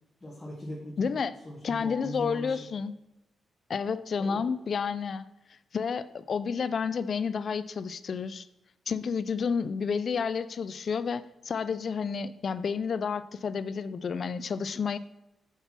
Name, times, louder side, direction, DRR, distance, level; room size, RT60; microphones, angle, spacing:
voice 1, 0.2-2.6 4.2-4.4, left 1 dB, 10° left, -5 dB, 1.6 m, -40 dB
voice 2, 1.0-1.3 1.6-2.9 3.7-5.2 5.7-8.5 8.9-15.0, left 6 dB, 50° left, 14 dB, 0.3 m, -30 dB
6.6 x 6.0 x 4.4 m, 0.91 s
wide cardioid pair, 135°, 0 cm